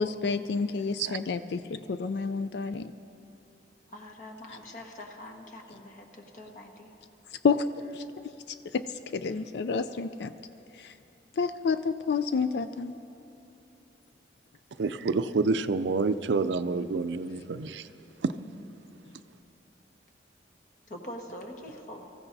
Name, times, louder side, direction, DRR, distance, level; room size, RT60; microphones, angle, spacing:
voice 1, 0.0-2.9 7.4-7.6 7.9-8.0 8.5-10.3 10.8-10.9 11.4-12.9, left 5 dB, 70° left, 11 dB, 0.4 m, -29 dB
voice 2, 3.9-6.9 9.3-9.4 14.8-15.0 20.9-22.1, left 1 dB, 45° left, 1 dB, 1.4 m, -44 dB
voice 3, 14.8-17.9 18.2-18.3, right 4 dB, 85° right, 12 dB, 0.4 m, -28 dB
24.5 x 15.0 x 2.7 m, 2.8 s
head